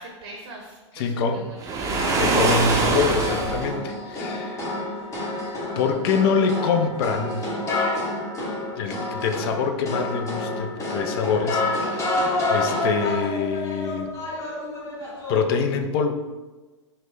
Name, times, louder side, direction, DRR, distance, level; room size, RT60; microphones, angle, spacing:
voice 1, 0.0-2.2 12.1-12.5, right 2 dB, 65° right, 1 dB, 0.7 m, -43 dB
voice 2, 0.9-1.5 2.2-4.6 5.8-7.5 8.8-14.1 15.3-16.1, left 5 dB, 55° left, 6 dB, 0.4 m, -25 dB
Waves surf, 1.6-3.7, right 3 dB, 20° right, 0.5 m, -23 dB
sound 1, 1.9-15.6, left 2 dB, 20° left, 0.9 m, -29 dB
3.9 x 2.2 x 3.2 m, 1.2 s
hypercardioid pair, 110°, 15 cm